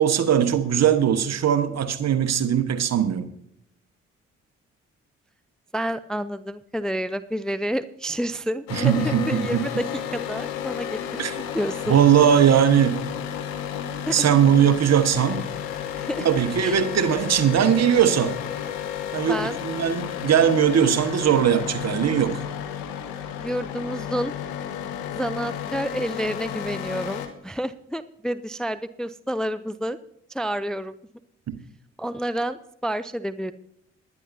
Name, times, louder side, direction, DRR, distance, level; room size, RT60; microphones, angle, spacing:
voice 1, 0.0-3.3 8.7-9.6 11.2-11.3 11.9-13.0 14.1-15.5 16.2-18.4 19.1-22.4 31.5-31.6, right 9 dB, 50° right, 11 dB, 1.3 m, -20 dB
voice 2, 5.7-11.2 11.5-12.0 14.1-14.3 15.9-16.3 16.6-16.8 19.3-19.6 23.4-24.3 25.1-30.0 30.3-31.0 32.0-33.5, equal, ahead, 14 dB, 0.5 m, -29 dB
sound 1, 8.7-27.3, left 9 dB, 75° left, 1.3 m, -32 dB
20.5 x 11.0 x 2.7 m, 0.75 s
figure-of-eight pair, 40°, 34 cm